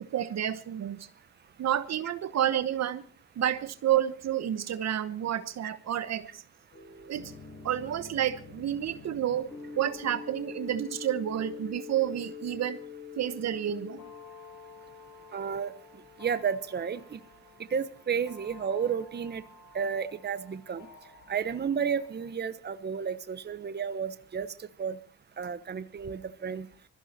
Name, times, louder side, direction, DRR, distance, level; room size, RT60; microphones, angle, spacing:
voice 1, 0.1-1.1 1.6-3.0 3.4-6.4 7.1-7.3 7.6-12.8 13.2-14.0, right 10 dB, 60° right, 1.1 m, -30 dB
sound 1, 6.7-22.3, left 5 dB, 85° left, 8.0 m, -47 dB
voice 2, 15.3-15.7 16.2-17.2 17.7-19.4 19.7-20.9 21.3-24.5 24.8-25.0 25.4-26.7, right 7 dB, 35° right, 1.1 m, -32 dB
21.5 x 14.0 x 4.3 m
cardioid pair, 90°, 30 cm